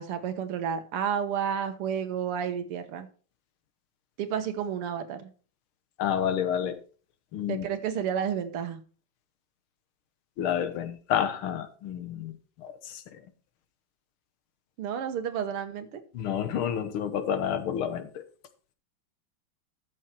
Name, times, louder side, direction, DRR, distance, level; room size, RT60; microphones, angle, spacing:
voice 1, 0.0-3.1 4.2-5.3 7.5-8.8 14.8-16.0, right 8 dB, 85° right, 2.1 m, -31 dB
voice 2, 6.0-6.8 7.3-7.7 10.4-12.3 12.6-13.0 16.1-18.2, left 9 dB, 75° left, 1.9 m, -29 dB
13.0 x 6.4 x 4.4 m
omnidirectional pair, 2.4 m